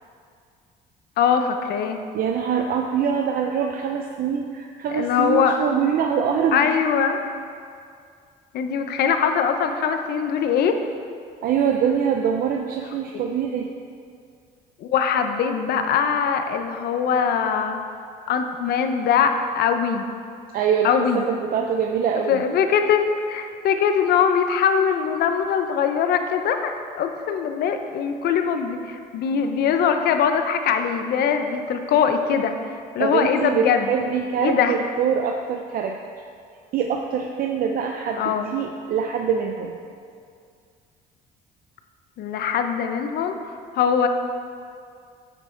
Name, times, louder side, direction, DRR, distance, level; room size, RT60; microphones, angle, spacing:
voice 1, 1.2-2.0 4.9-5.6 6.5-7.2 8.5-10.8 13.1-13.2 14.8-17.8 18.3-20.1 20.8-21.2 22.3-32.6 32.9-34.0 34.4-34.8 38.2-38.5 42.2-44.1, left 7 dB, 70° left, 6 dB, 0.7 m, -22 dB
voice 2, 2.1-6.6 11.4-13.7 20.5-22.4 33.0-36.0 36.7-39.8, right 7 dB, 60° right, 3 dB, 0.5 m, -24 dB
9.1 x 6.0 x 4.4 m, 2.3 s
cardioid pair, 110°, 17 cm